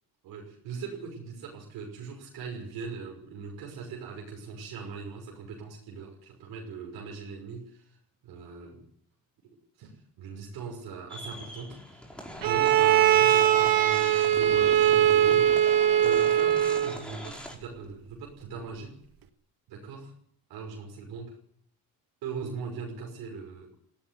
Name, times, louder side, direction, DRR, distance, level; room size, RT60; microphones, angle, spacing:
voice 1, 0.2-7.8 8.2-8.8 9.4-12.1 12.4-15.5 16.0-19.0 19.7-20.1 20.5-21.3 22.2-23.7, right 5 dB, 85° right, 1 dB, 5.9 m, -40 dB
sound 1, 11.1-17.6, equal, 5° left, 5.5 m, -42 dB
Bowed string instrument, 12.4-17.0, right 11 dB, 70° right, 1.9 m, -21 dB
19.0 x 17.0 x 9.8 m, 0.64 s
cardioid pair, 105°, 37 cm